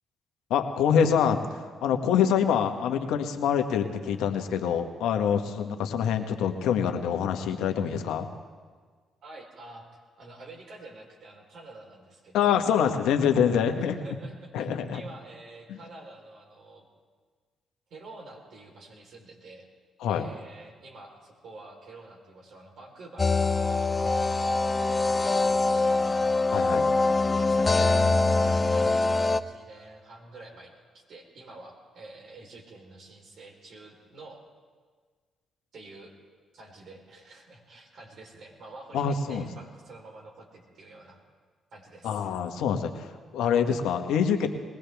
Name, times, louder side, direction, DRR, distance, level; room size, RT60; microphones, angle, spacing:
voice 1, 0.5-8.3 12.3-14.2 14.5-15.0 15.7-15.8 20.0-20.3 26.5-26.9 38.9-39.5 42.0-44.5, left 7 dB, 80° left, 6 dB, 1.2 m, -25 dB
voice 2, 9.2-12.5 13.8-16.8 17.9-19.7 20.1-26.2 27.3-34.4 35.7-36.1 36.5-41.2 41.7-42.3, right 2 dB, 65° right, 0 dB, 3.8 m, -48 dB
sound 1, 23.2-29.4, left 3 dB, 30° left, 0.8 m, -23 dB
22.0 x 18.5 x 3.5 m, 1.5 s
supercardioid pair, 55°, 0 cm